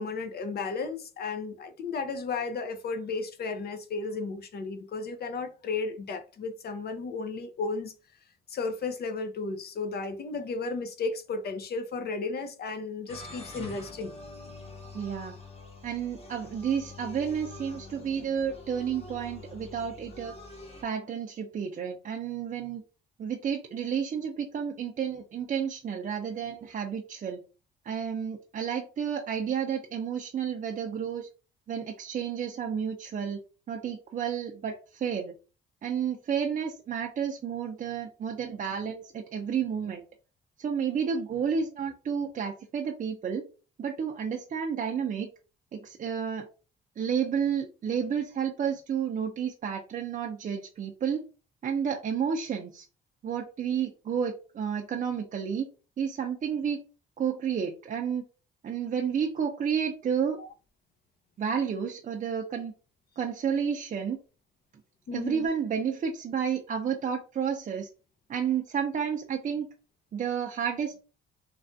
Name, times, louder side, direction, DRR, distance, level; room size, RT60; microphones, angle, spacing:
voice 1, 0.0-7.9 8.5-14.1 60.4-60.5 65.1-65.5, left 4 dB, 55° left, 0.6 m, -34 dB
sound 1, 13.1-20.8, left 3 dB, 30° left, 0.9 m, -45 dB
voice 2, 14.9-15.4 15.8-20.3 20.8-22.8 23.2-27.4 27.8-31.3 31.7-33.4 33.7-35.3 35.8-40.0 40.6-43.4 43.8-45.3 45.7-46.5 47.0-51.2 51.6-52.9 53.2-55.7 56.0-56.8 57.2-58.2 58.6-60.4 61.4-62.7 63.2-64.2 65.1-67.9 68.3-69.6 70.1-71.0, right 7 dB, 40° right, 0.5 m, -31 dB
3.3 x 2.3 x 2.6 m
cardioid pair, 90°, 20 cm